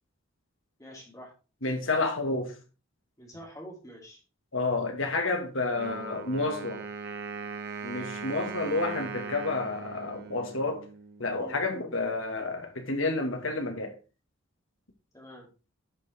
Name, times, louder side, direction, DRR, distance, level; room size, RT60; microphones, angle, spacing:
voice 1, 0.8-1.3 3.2-4.2 11.3-11.6 15.1-15.5, equal, 15° left, 3.1 m, -46 dB
voice 2, 1.6-2.6 4.5-6.8 7.8-10.9 11.2-13.9, left 3 dB, 70° left, 2.5 m, -30 dB
Wind instrument woodwind instrument, 5.8-11.4, right 5 dB, 55° right, 1.7 m, -39 dB
10.5 x 6.1 x 4.7 m
head